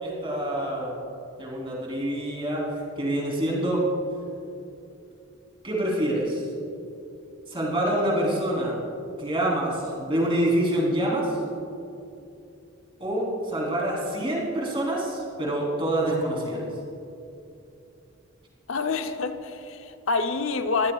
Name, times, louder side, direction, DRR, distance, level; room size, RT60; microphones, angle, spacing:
voice 1, 0.0-1.0 1.4-2.6 3.0-3.8 5.6-6.5 7.5-8.8 9.2-11.4 13.0-16.6, right 1 dB, 25° right, 3.7 m, -26 dB
voice 2, 18.7-20.9, left 4 dB, 75° left, 0.8 m, -27 dB
23.0 x 16.0 x 2.4 m
head